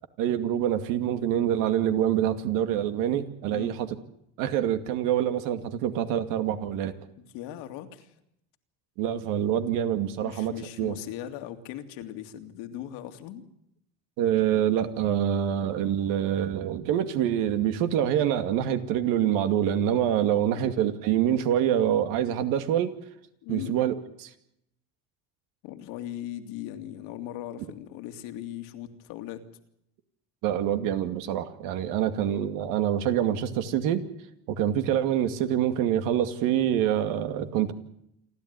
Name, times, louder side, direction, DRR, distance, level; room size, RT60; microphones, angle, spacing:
voice 1, 0.2-3.9 4.4-6.9 9.0-11.0 14.2-22.9 23.5-23.9 24.2-24.3 30.4-34.0 34.5-37.7, right 10 dB, 70° right, 9 dB, 2.4 m, -26 dB
voice 2, 7.2-8.1 10.2-13.4 20.2-20.7 23.4-23.8 25.6-29.4, left 12 dB, 75° left, 7 dB, 2.6 m, -39 dB
28.0 x 12.0 x 9.7 m, 0.78 s
supercardioid pair, 115°, 34 cm